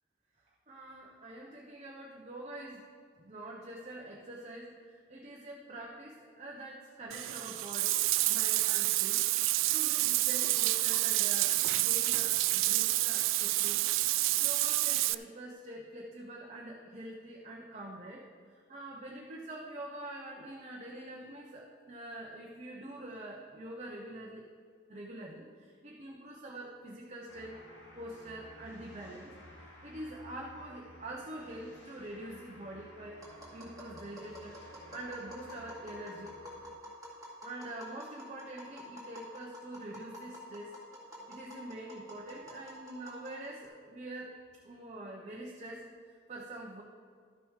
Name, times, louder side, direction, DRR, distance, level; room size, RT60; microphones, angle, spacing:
voice 1, 0.7-2.8 3.2-9.2 9.7-18.2 18.7-24.5 24.9-27.6 28.0-29.3 29.6-33.2 33.5-36.4 37.4-40.8 41.3-44.3 44.6-45.9 46.3-46.8, right 1 dB, 35° right, -3 dB, 0.9 m, -45 dB
Bathtub (filling or washing), 7.1-15.1, right 18 dB, 85° right, 0.3 m, -28 dB
sound 1, 27.3-36.7, equal, 65° left, 2.1 m, -54 dB
Tap, 33.2-43.7, equal, 20° right, 2.5 m, -49 dB
12.5 x 6.9 x 4.9 m, 2.1 s
head